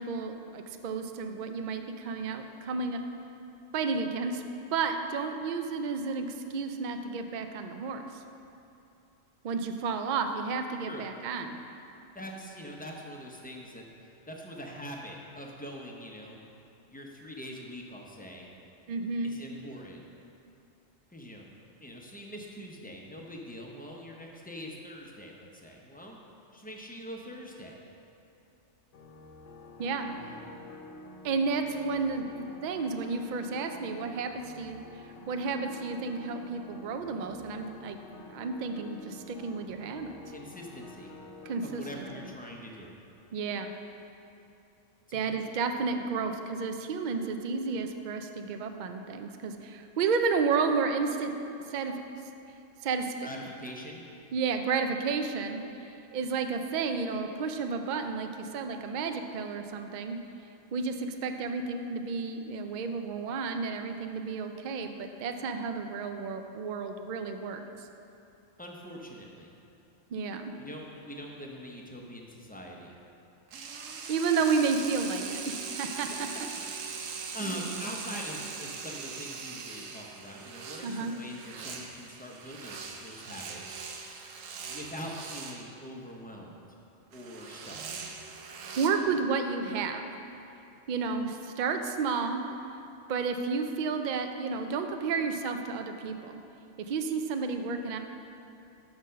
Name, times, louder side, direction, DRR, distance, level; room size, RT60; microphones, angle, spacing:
voice 1, 0.0-3.0 3.7-4.4 4.7-8.2 9.4-11.6 18.9-19.4 29.8-30.1 31.2-34.8 35.3-38.0 38.3-40.1 41.5-41.8 43.3-43.7 45.1-51.3 51.7-52.0 52.8-53.3 54.3-60.2 60.7-67.9 70.1-70.5 74.1-76.5 77.4-77.6 80.8-81.1 88.8-90.0 90.9-92.4 93.1-96.4 96.8-98.0, right 4 dB, 70° right, 6 dB, 0.4 m, -31 dB
voice 2, 12.1-16.4 16.9-18.5 19.2-20.0 21.1-21.5 21.8-26.2 26.5-27.8 30.2-30.4 40.3-41.1 41.6-42.9 45.1-45.5 53.2-54.1 68.6-69.5 70.6-73.0 76.8-83.8 84.7-86.6 87.1-87.8, equal, 15° left, -1 dB, 0.3 m, -43 dB
sound 1, 28.9-42.3, left 2 dB, 70° left, 0.9 m, -49 dB
sound 2, 73.5-85.7 87.1-88.9, right 5 dB, 90° right, 1.1 m, -41 dB
6.3 x 6.0 x 5.6 m, 2.8 s
omnidirectional pair, 1.3 m